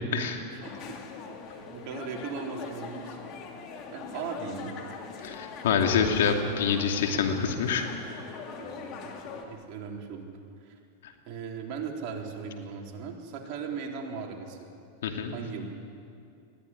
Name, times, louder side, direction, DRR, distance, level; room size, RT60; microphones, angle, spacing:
voice 1, 0.5-3.2 3.9-4.9 8.6-10.3 10.6-10.8 11.3-14.7 15.3-15.7, right 6 dB, 50° right, 0 dB, 3.8 m, -38 dB
sound 1, 0.6-9.4, left 5 dB, 45° left, 2.6 m, -42 dB
voice 2, 5.2-7.9 15.0-15.3, left 6 dB, 75° left, 4 dB, 2.7 m, -26 dB
20.5 x 15.0 x 9.9 m, 2.5 s
hypercardioid pair, 120°, 0 cm